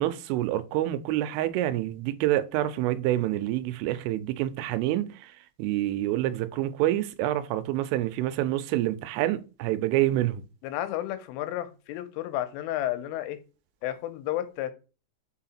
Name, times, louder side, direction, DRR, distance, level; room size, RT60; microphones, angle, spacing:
voice 1, 0.0-5.3 5.6-10.5, right 14 dB, 90° right, 3.2 m, -27 dB
voice 2, 10.6-13.4 13.8-14.7, left 13 dB, 90° left, 3.3 m, -32 dB
6.2 x 4.8 x 4.2 m
omnidirectional pair, 5.7 m